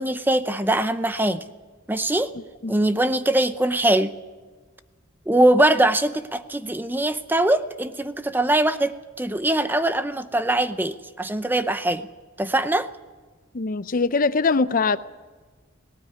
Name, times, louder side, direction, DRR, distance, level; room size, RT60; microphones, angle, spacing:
voice 1, 0.0-1.4 1.9-2.3 2.7-4.1 5.3-12.0 12.4-12.9, right 1 dB, 10° right, 11 dB, 0.7 m, -22 dB
voice 2, 13.5-15.0, left 4 dB, 45° left, 14 dB, 0.6 m, -22 dB
18.0 x 18.0 x 9.5 m, 1.4 s
head